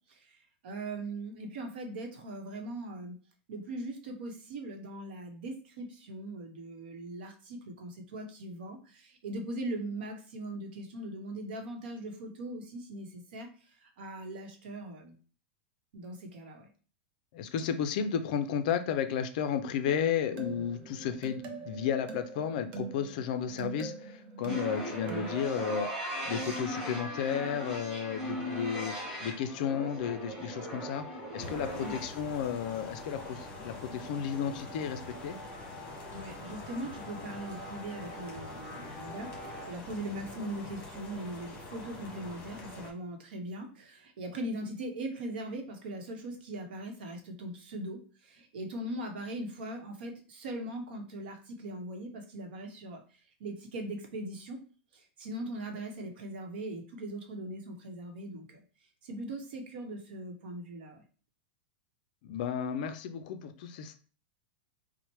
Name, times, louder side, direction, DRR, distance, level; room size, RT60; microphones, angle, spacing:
voice 1, 0.6-3.2 3.5-13.5 13.8-15.2 15.9-16.7 31.8-31.9 36.1-53.0 53.4-54.6 54.9-58.6 59.0-61.0, right 1 dB, 65° right, 4 dB, 0.9 m, -40 dB
voice 2, 17.3-35.4 62.2-63.9, left 8 dB, 50° left, 8 dB, 0.4 m, -33 dB
sound 1, 20.0-25.5, right 5 dB, 30° right, 0.6 m, -43 dB
sound 2, 24.5-39.7, equal, 10° right, 1.2 m, -40 dB
sound 3, 31.4-42.9, left 2 dB, 25° left, 1.1 m, -45 dB
4.3 x 2.1 x 3.0 m, 0.39 s
supercardioid pair, 165°, 6 cm